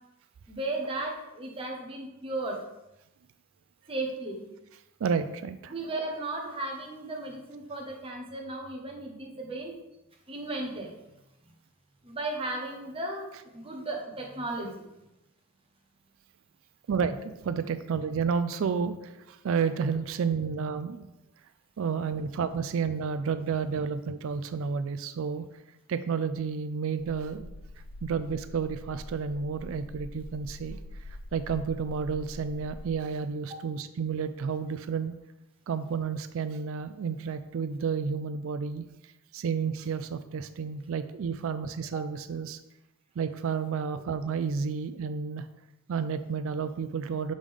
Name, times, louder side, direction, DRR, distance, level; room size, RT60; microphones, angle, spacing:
voice 1, 0.5-2.6 3.9-4.4 5.7-9.8 10.3-10.9 12.0-14.7 33.5-33.6, right 2 dB, 25° right, 1 dB, 1.1 m, -35 dB
voice 2, 5.0-5.7 16.9-21.1 21.8-25.5 25.9-27.5 28.0-30.8 31.3-35.1 35.7-38.8 39.3-42.6 43.2-45.5 45.9-47.3, right 6 dB, 65° right, 12 dB, 0.4 m, -31 dB
sound 1, 27.0-32.9, left 1 dB, 50° left, 0.5 m, -44 dB
6.4 x 5.1 x 3.7 m, 0.92 s
head